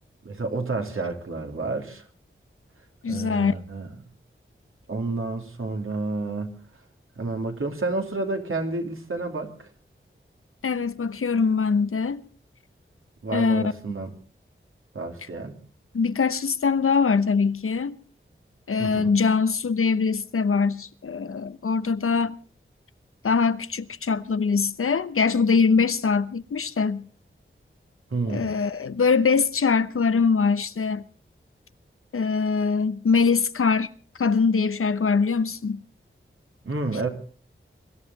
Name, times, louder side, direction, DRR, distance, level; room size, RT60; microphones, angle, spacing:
voice 1, 0.2-2.0 3.0-3.9 4.9-6.5 7.2-9.7 13.2-14.1 14.9-15.5 18.8-19.1 28.1-28.5 36.6-37.1, right 3 dB, 75° right, 3.1 m, -30 dB
voice 2, 3.0-3.6 10.6-12.2 13.3-13.7 15.9-17.9 18.7-22.4 23.2-27.1 28.3-31.0 32.1-33.9 34.2-35.8, left 5 dB, 90° left, 0.9 m, -23 dB
23.5 x 13.5 x 4.1 m
wide cardioid pair, 80°, 21 cm